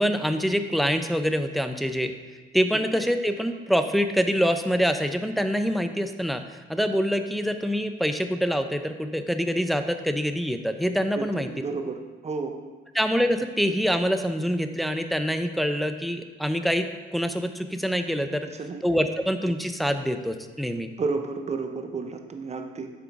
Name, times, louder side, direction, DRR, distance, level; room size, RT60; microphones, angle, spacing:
voice 1, 0.0-2.1 2.5-6.4 6.7-11.5 12.9-18.5 18.8-20.9, equal, ahead, 7 dB, 0.4 m, -25 dB
voice 2, 11.1-12.6 18.5-18.8 21.0-22.9, right 4 dB, 35° right, 6 dB, 0.7 m, -31 dB
6.9 x 3.8 x 4.7 m, 1.4 s
cardioid pair, 90°, 20 cm